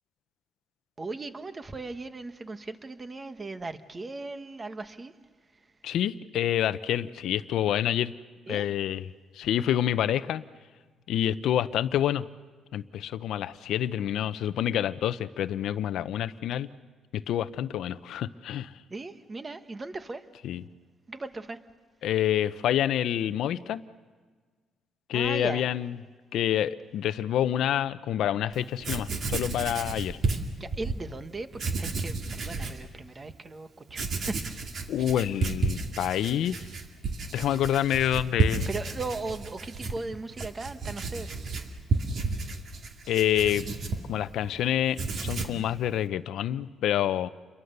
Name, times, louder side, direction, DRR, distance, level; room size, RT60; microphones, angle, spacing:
voice 1, 1.0-5.1 8.5-8.7 18.9-20.2 21.1-21.6 25.1-25.7 29.0-29.2 30.6-34.7 38.7-41.4, right 3 dB, 25° right, 10 dB, 1.2 m, -38 dB
voice 2, 5.8-8.1 8.5-9.1 9.3-10.4 11.1-12.2 12.7-16.7 17.1-18.7 20.4-20.6 22.0-23.8 25.1-25.9 26.3-30.2 34.9-36.6 37.3-38.7 43.1-43.7 44.1-47.3, left 11 dB, 75° left, 13 dB, 0.8 m, -27 dB
Writing, 28.5-28.6 28.8-31.0 31.5-32.8 33.3-33.4 33.9-44.5 44.8-45.6, right 3 dB, 50° right, 2.2 m, -32 dB
29.0 x 22.5 x 6.7 m, 1.5 s
cardioid pair, 130°, 0 cm